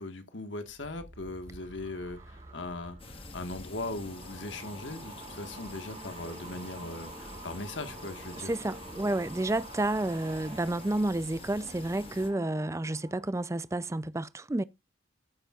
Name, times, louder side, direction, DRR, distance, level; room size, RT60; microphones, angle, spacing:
voice 1, 0.0-8.5, left 2 dB, 75° left, 1.6 m, -39 dB
sound 1, 0.6-13.3 13.6-14.0, right 2 dB, 30° right, 1.6 m, -48 dB
sound 2, 3.0-12.3, left 2 dB, 30° left, 1.6 m, -47 dB
voice 2, 8.4-14.6, right 2 dB, 15° right, 0.4 m, -30 dB
14.5 x 7.2 x 2.5 m
head